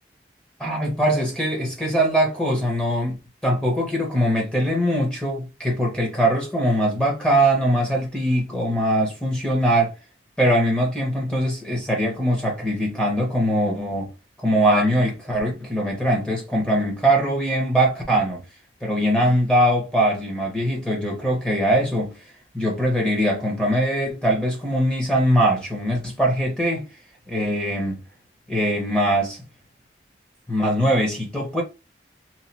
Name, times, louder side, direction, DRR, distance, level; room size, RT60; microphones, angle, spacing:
voice 1, 0.6-3.2 3.4-9.9 10.4-14.1 14.4-18.4 18.8-22.2 22.5-26.9 27.3-28.0 28.5-29.4 30.5-31.6, right 1 dB, 5° left, 1.0 m, -22 dB
3.1 x 2.6 x 2.7 m
head